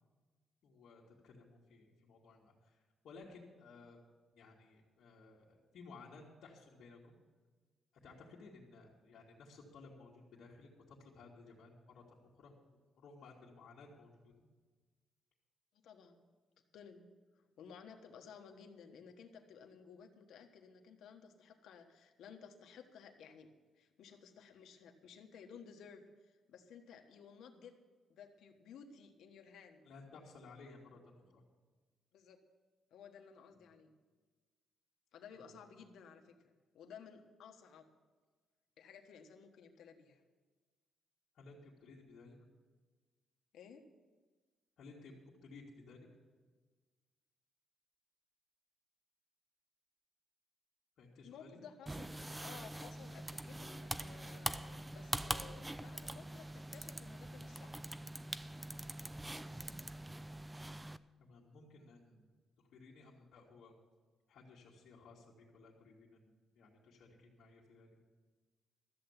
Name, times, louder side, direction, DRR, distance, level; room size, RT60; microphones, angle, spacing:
voice 1, 0.6-2.8 3.0-4.0 4.3-7.2 8.0-12.5 13.0-14.3 29.8-31.4 33.5-33.6 35.3-35.5 41.3-42.4 44.8-46.1 51.0-51.6 61.2-62.3 62.6-63.7 64.3-68.0, left 3 dB, 65° left, -7 dB, 2.2 m, -57 dB
voice 2, 15.8-16.2 16.7-17.1 17.6-27.8 28.1-29.8 32.1-32.4 32.9-33.9 35.1-37.9 38.8-40.2 43.5-43.9 51.2-57.9, left 6 dB, 80° left, 4 dB, 1.3 m, -56 dB
sound 1, 51.9-61.0, right 1 dB, 10° right, 0.3 m, -43 dB
13.5 x 7.9 x 7.3 m, 1.4 s
cardioid pair, 165°, 0 cm